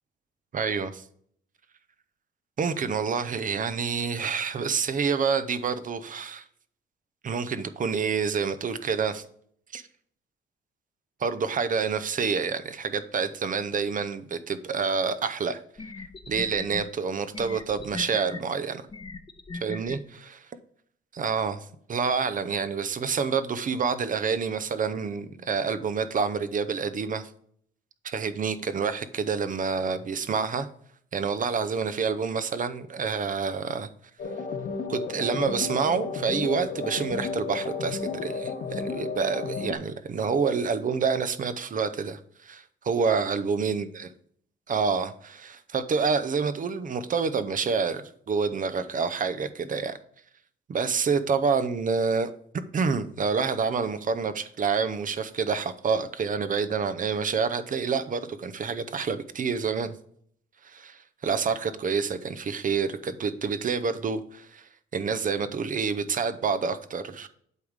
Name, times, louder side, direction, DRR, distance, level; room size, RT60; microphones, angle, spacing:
voice 1, 0.5-1.0 2.6-6.4 7.2-9.3 9.7-9.8 11.2-15.6 16.3-18.8 19.6-20.5 21.1-27.3 28.0-30.7 31.1-33.9 34.9-44.1 44.7-50.0 50.7-52.3 52.7-60.0 60.6-67.3, right 5 dB, 40° right, 12 dB, 0.7 m, -28 dB
sound 1, 15.2-15.3 15.8-16.8 17.3-18.4 18.9-20.0, left 3 dB, 25° left, 0.8 m, -38 dB
sound 2, 34.2-39.7, left 4 dB, 60° left, 1.5 m, -32 dB
8.2 x 3.6 x 6.4 m, 0.64 s
cardioid pair, 90°, 20 cm